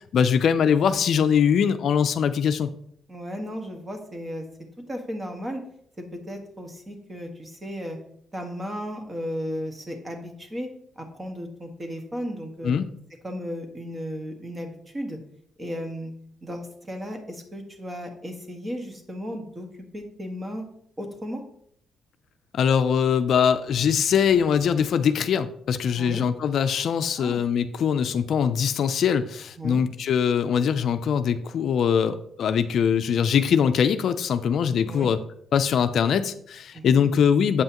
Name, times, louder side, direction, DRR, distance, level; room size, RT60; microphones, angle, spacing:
voice 1, 0.1-2.7 12.6-12.9 22.5-35.2 35.5-37.6, left 7 dB, 65° left, 10 dB, 0.4 m, -22 dB
voice 2, 3.1-4.4 4.9-5.6 6.0-8.0 8.3-10.7 10.9-12.7 13.2-15.2 15.6-16.1 16.4-19.7 19.9-20.7 21.0-21.4 25.9-26.2 27.2-27.4 29.6-29.8 34.9-35.1 36.7-37.0, equal, 25° right, 4 dB, 1.5 m, -35 dB
8.1 x 5.5 x 3.0 m, 0.67 s
cardioid pair, 90°, 0 cm